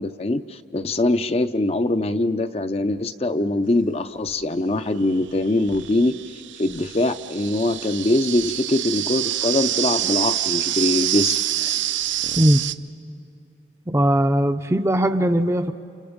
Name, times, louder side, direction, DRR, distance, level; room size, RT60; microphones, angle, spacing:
voice 1, 0.0-6.1 6.6-11.7, left 2 dB, 30° left, 9 dB, 0.5 m, -23 dB
sound 1, 4.3-4.4 5.3-12.7, right 12 dB, 80° right, 0.6 m, -26 dB
voice 2, 13.9-15.7, right 1 dB, 15° right, 8 dB, 0.6 m, -19 dB
29.5 x 29.0 x 5.2 m, 2.7 s
head